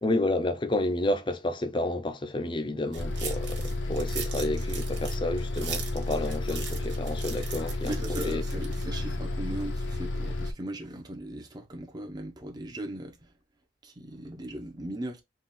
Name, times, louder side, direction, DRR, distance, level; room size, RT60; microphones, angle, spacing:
voice 1, 0.0-8.4, left 2 dB, 25° left, 0.5 m, -30 dB
sound 1, 2.9-8.9, right 6 dB, 75° right, 1.3 m, -41 dB
Bus, 3.0-10.5, left 2 dB, 80° left, 0.7 m, -32 dB
voice 2, 7.8-13.3 13.8-15.2, right 1 dB, 20° right, 0.7 m, -38 dB
3.8 x 2.4 x 4.0 m
head